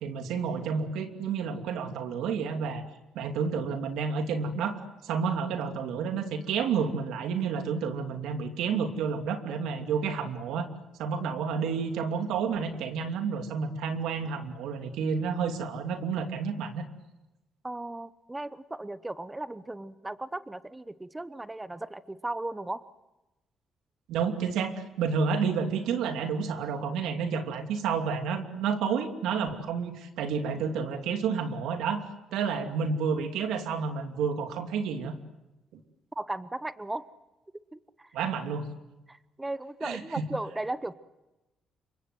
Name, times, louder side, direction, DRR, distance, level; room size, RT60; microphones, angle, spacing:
voice 1, 0.0-2.8 3.1-10.7 11.0-16.9 24.1-32.1 32.3-35.1 38.1-38.7 39.8-40.2, right 6 dB, 90° right, 6 dB, 2.7 m, -30 dB
voice 2, 17.6-22.9 36.1-37.1 37.7-38.1 39.1-40.9, right 2 dB, 15° right, 14 dB, 0.9 m, -36 dB
27.5 x 24.0 x 7.8 m, 0.99 s
cardioid pair, 90°, 0 cm